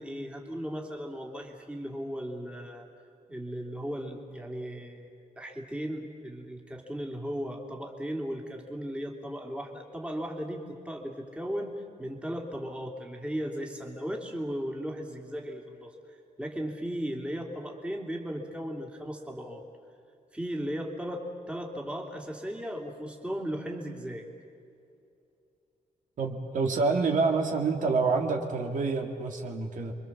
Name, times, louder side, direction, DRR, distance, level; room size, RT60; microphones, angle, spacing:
voice 1, 0.0-2.9 3.3-5.1 5.4-19.6 20.3-24.3, equal, 5° right, 0 dB, 2.9 m, -36 dB
voice 2, 26.2-29.9, right 4 dB, 60° right, 2 dB, 2.4 m, -27 dB
30.0 x 24.0 x 7.4 m, 2.6 s
wide cardioid pair, 165°, 15 cm